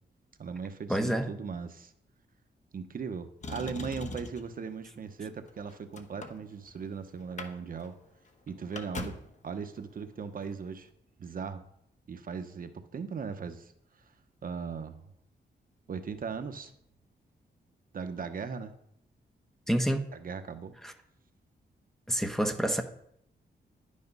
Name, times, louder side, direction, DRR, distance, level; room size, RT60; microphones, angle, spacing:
voice 1, 0.4-1.9 2.7-8.0 8.5-9.2 9.4-10.9 11.2-11.6 12.1-13.7 14.4-15.0 15.9-16.7 17.9-18.7 20.1-20.7, right 5 dB, 55° right, 8 dB, 1.0 m, -38 dB
voice 2, 0.9-1.3 19.7-20.0 20.8-20.9 22.1-22.8, equal, ahead, 5 dB, 1.0 m, -28 dB
Motor vehicle (road), 3.4-4.5 5.3-6.9 7.2-7.5 7.8-7.9 8.2-9.4 10.4-10.5, left 3 dB, 40° left, 1.2 m, -41 dB
11.5 x 8.5 x 5.5 m, 0.71 s
wide cardioid pair, 150°, 18 cm